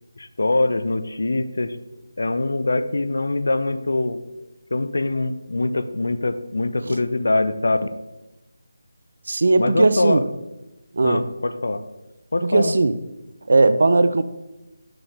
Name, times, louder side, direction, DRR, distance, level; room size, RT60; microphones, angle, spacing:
voice 1, 0.2-1.8 2.2-4.2 4.7-7.9 9.6-10.2 11.0-11.8 12.3-12.8, left 2 dB, 70° left, 11 dB, 0.5 m, -23 dB
voice 2, 9.3-10.2 10.9-11.2 12.4-13.0 13.5-14.2, right 3 dB, 55° right, 12 dB, 0.4 m, -18 dB
6.2 x 4.6 x 5.0 m, 0.98 s
figure-of-eight pair, 175°, 0 cm